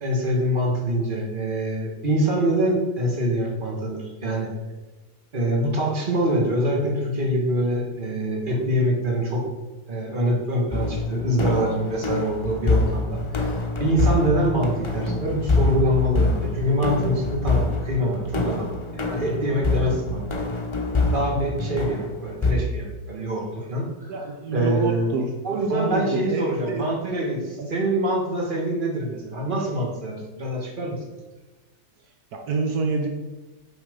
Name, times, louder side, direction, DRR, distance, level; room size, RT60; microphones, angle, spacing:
voice 1, 0.0-4.5 5.3-9.4 9.9-20.3 21.0-24.2 24.5-25.1 25.4-31.0, right 1 dB, 35° right, -1 dB, 1.8 m, -25 dB
sound 1, 10.7-22.5, left 3 dB, 25° left, 0.7 m, -25 dB
voice 2, 24.1-25.3 25.7-26.9 27.6-27.7 32.3-33.1, right 3 dB, 75° right, 2 dB, 1.4 m, -27 dB
7.0 x 5.7 x 5.2 m, 1.2 s
omnidirectional pair, 1.6 m